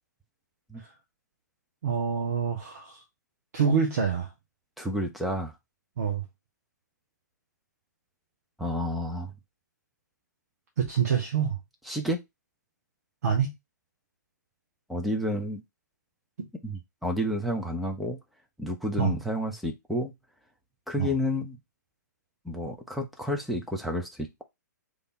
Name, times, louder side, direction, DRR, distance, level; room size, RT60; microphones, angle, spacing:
voice 1, 1.8-3.0 3.5-4.3 6.0-6.2 10.8-11.6 13.2-13.5 16.4-16.5 19.0-19.2 21.0-21.1, right 7 dB, 55° right, 1.2 m, -26 dB
voice 2, 4.8-5.5 8.6-9.3 11.9-12.2 14.9-15.6 16.6-18.2 18.6-20.1 20.9-21.6 22.4-24.4, left 1 dB, ahead, 0.8 m, -30 dB
3.3 x 3.0 x 4.2 m
figure-of-eight pair, 120°, 10 cm